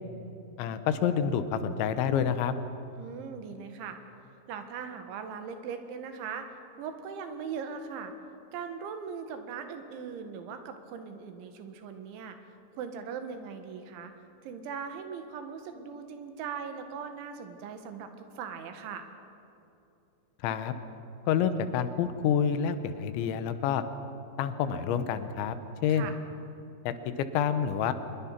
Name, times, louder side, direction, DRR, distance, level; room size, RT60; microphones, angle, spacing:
voice 1, 0.6-2.5 20.4-20.7 21.3-23.8 24.4-25.6 25.8-26.1 26.8-26.9 27.3-27.9, left 8 dB, 80° left, 10 dB, 3.4 m, -28 dB
voice 2, 3.0-4.0 4.5-8.1 8.5-12.4 12.8-14.1 14.4-19.1 25.9-26.1, right 6 dB, 90° right, 7 dB, 4.0 m, -40 dB
25.0 x 22.0 x 6.0 m, 2.8 s
omnidirectional pair, 5.2 m